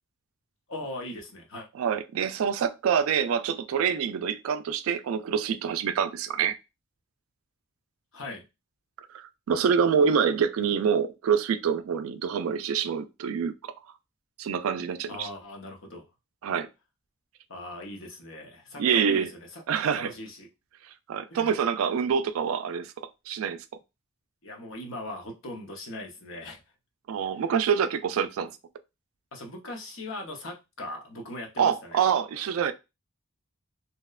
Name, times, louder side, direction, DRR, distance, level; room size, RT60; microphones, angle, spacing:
voice 1, 0.7-1.7 8.1-8.4 15.1-16.0 17.5-19.6 19.9-20.5 21.3-21.5 24.4-26.6 29.3-32.0, left 1 dB, 65° left, 0.7 m, -39 dB
voice 2, 1.7-6.6 9.1-13.5 14.4-15.3 16.4-16.7 18.8-19.3 19.7-20.1 21.1-23.6 27.1-28.5 31.6-32.7, right 7 dB, 80° right, 0.3 m, -26 dB
2.8 x 2.1 x 2.3 m
head